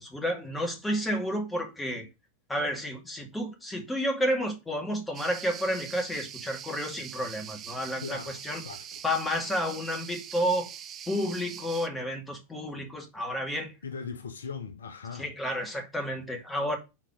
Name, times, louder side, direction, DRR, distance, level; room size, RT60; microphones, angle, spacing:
voice 1, 0.0-2.1 2.5-8.6 9.0-10.7 11.1-13.7 15.1-16.8, equal, 5° left, 2.3 m, -31 dB
sound 1, 5.1-11.9, right 9 dB, 30° right, 0.7 m, -43 dB
voice 2, 8.0-8.4 8.6-9.0 13.8-15.3, left 5 dB, 70° left, 0.9 m, -39 dB
5.9 x 4.8 x 6.4 m
figure-of-eight pair, 90°, 0 cm